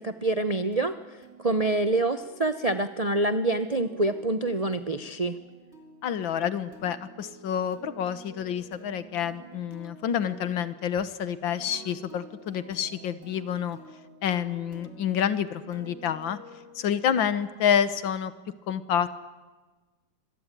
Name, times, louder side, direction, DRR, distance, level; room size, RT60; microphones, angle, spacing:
voice 1, 0.0-5.4, right 2 dB, 75° right, 9 dB, 0.3 m, -26 dB
sound 1, 0.7-17.4, right 2 dB, 35° right, 4.0 m, -50 dB
voice 2, 6.0-13.8 14.2-16.4 16.8-18.3 18.7-19.3, left 8 dB, 75° left, 14 dB, 1.9 m, -28 dB
25.5 x 22.0 x 9.1 m, 1.3 s
omnidirectional pair, 2.2 m